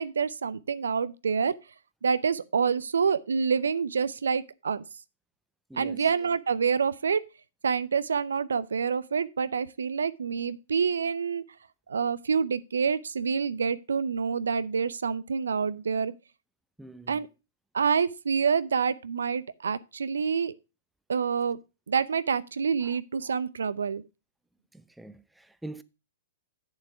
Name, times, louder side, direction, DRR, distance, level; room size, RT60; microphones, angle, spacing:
voice 1, 0.0-1.5 2.0-4.8 5.8-7.2 7.6-11.4 11.9-16.1 17.1-17.3 17.7-20.5 21.1-21.6 21.9-24.0, right 6 dB, 80° right, 0.6 m, -27 dB
voice 2, 5.7-6.1 16.8-17.2 22.8-23.0 24.7-25.8, right 2 dB, 5° right, 0.6 m, -44 dB
8.8 x 7.2 x 4.8 m
hypercardioid pair, 115°, 0 cm